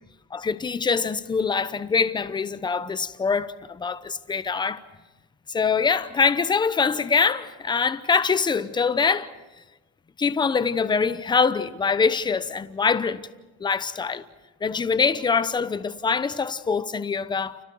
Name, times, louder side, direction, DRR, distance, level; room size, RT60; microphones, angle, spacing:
voice 1, 0.3-4.8 5.5-9.3 10.2-13.2 13.6-14.2 14.6-17.6, left 5 dB, 10° left, 0.8 m, -24 dB
30.0 x 30.0 x 4.7 m
cardioid pair, 150°, 36 cm